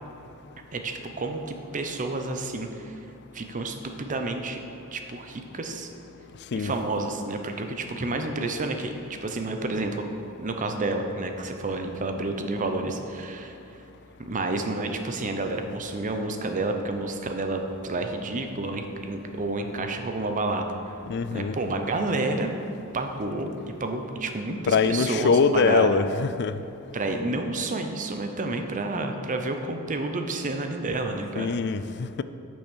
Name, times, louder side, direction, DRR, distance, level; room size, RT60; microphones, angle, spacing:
voice 1, 0.7-3.0 3.3-4.6 4.9-5.9 6.5-10.1 10.4-13.8 14.3-20.9 21.3-22.5 22.9-23.5 23.8-26.0 26.9-31.5, right 2 dB, 35° right, 5 dB, 0.7 m, -30 dB
voice 2, 21.1-21.6 24.7-26.5 31.4-32.2, left 5 dB, 50° left, 12 dB, 0.4 m, -23 dB
8.7 x 6.3 x 6.3 m, 2.6 s
head